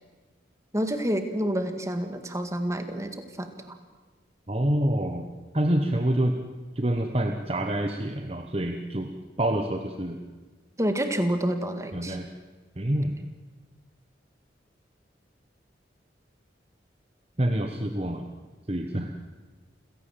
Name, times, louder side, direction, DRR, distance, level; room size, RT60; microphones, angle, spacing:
voice 1, 0.7-3.7 10.8-12.2, right 1 dB, 15° right, 7 dB, 1.9 m, -28 dB
voice 2, 4.5-5.3 5.5-6.4 6.8-9.1 9.4-10.2 11.9-12.2 12.8-13.2 17.4-18.2 18.7-19.1, right 1 dB, 30° right, 5 dB, 1.1 m, -26 dB
28.5 x 17.0 x 7.6 m, 1.3 s
head